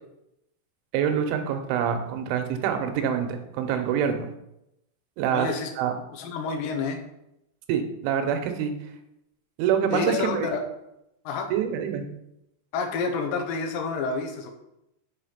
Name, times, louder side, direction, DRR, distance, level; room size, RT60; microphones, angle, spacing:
voice 1, 0.9-4.3 5.2-5.5 5.8-5.9 7.7-8.7 9.6-10.6 11.5-12.1, right 8 dB, 85° right, 6 dB, 3.4 m, -26 dB
voice 2, 5.3-5.7 6.1-7.0 9.9-10.6 11.3-11.5 12.7-14.5, left 4 dB, 90° left, 3 dB, 2.0 m, -29 dB
7.5 x 5.4 x 5.8 m, 0.85 s
omnidirectional pair, 5.4 m